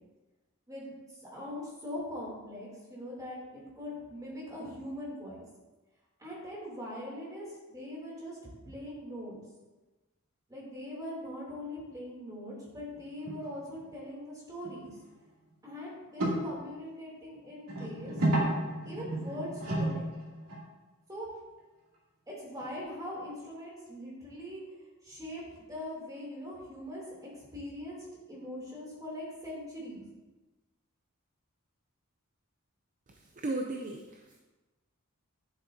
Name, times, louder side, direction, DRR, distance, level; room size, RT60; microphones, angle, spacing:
voice 1, 1.2-5.4 6.2-8.4 8.7-9.4 10.5-14.9 15.6-18.5 18.8-20.1 21.1-21.3 22.3-24.6 25.0-27.0 27.5-30.0, left 1 dB, 15° right, -5 dB, 2.9 m, -41 dB
sound 1, 13.0-13.5 13.8-13.9 14.6-14.7 15.1-15.2 16.2-16.4 17.7-20.6 22.6-22.7, right 1 dB, 80° right, 2.7 m, -32 dB
voice 2, 33.1-34.4, right 2 dB, 35° right, 3 dB, 0.5 m, -36 dB
10.5 x 7.3 x 2.7 m, 1.2 s
head